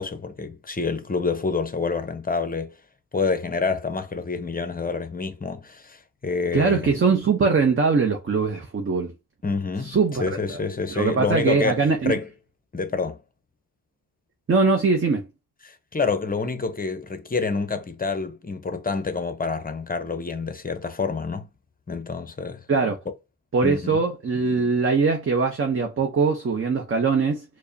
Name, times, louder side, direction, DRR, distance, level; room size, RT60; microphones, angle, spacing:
voice 1, 0.0-2.7 3.1-6.9 9.4-12.3 12.7-13.2 15.6-21.5 21.9-22.6 23.6-24.0, left 4 dB, 20° left, 0.7 m, -28 dB
voice 2, 6.5-9.1 9.8-10.6 10.9-12.1 14.5-15.3 22.7-23.0 23.5-27.4, right 4 dB, 30° right, 0.8 m, -22 dB
4.6 x 2.2 x 2.7 m
cardioid pair, 65°, 39 cm